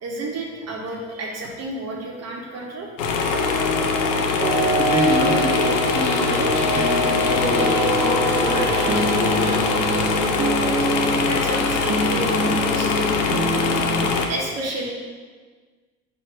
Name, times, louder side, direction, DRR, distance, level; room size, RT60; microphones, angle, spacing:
voice 1, 0.0-2.9 11.2-13.2 14.2-14.9, right 2 dB, 45° right, -2 dB, 0.9 m, -31 dB
sound 1, 3.0-14.3, left 5 dB, 80° left, 0.5 m, -23 dB
sound 2, 3.3-14.1, right 1 dB, 25° right, 0.6 m, -25 dB
sound 3, 4.8-13.2, left 2 dB, 50° left, 1.3 m, -37 dB
voice 2, 4.8-10.1, equal, 15° left, -4 dB, 1.3 m, -27 dB
4.4 x 2.6 x 4.6 m, 1.5 s
hypercardioid pair, 65°, 37 cm